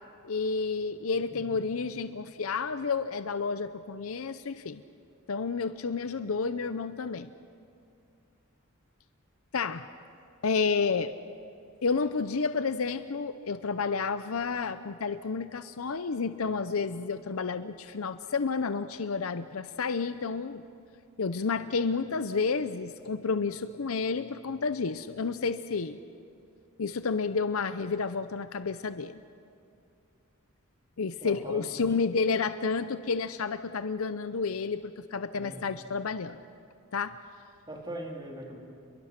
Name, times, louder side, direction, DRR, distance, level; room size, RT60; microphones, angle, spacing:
voice 1, 0.2-4.8 5.3-7.3 9.5-9.9 10.4-11.1 11.8-20.6 21.2-26.0 26.8-29.2 31.0-36.4 36.9-37.2, left 4 dB, 75° left, 12 dB, 0.7 m, -30 dB
voice 2, 31.2-31.7 35.3-35.7 37.7-38.6, right 1 dB, 20° right, -1 dB, 3.5 m, -40 dB
29.5 x 23.0 x 5.9 m, 2.5 s
head